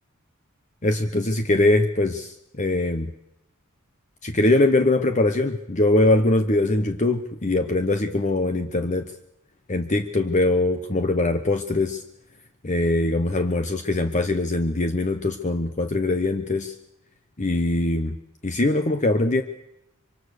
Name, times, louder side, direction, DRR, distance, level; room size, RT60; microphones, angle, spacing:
voice 1, 0.8-3.1 4.2-9.1 9.7-12.0 12.6-16.7 17.4-18.2 18.4-19.4, left 2 dB, 35° left, 7 dB, 1.0 m, -22 dB
25.0 x 25.0 x 6.6 m, 0.86 s
head